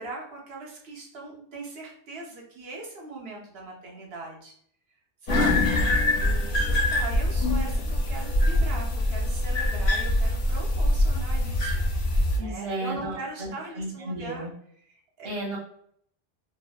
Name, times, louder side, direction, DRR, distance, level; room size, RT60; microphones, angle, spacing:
voice 1, 0.0-4.5 5.2-14.5 14.9-15.3, right 2 dB, 65° right, -1 dB, 0.9 m, -40 dB
sound 1, 5.3-12.4, left 1 dB, 60° left, 0.7 m, -24 dB
voice 2, 12.4-14.5 15.2-15.6, right 2 dB, 40° right, -7 dB, 0.6 m, -33 dB
2.8 x 2.0 x 2.2 m, 0.64 s
omnidirectional pair, 1.1 m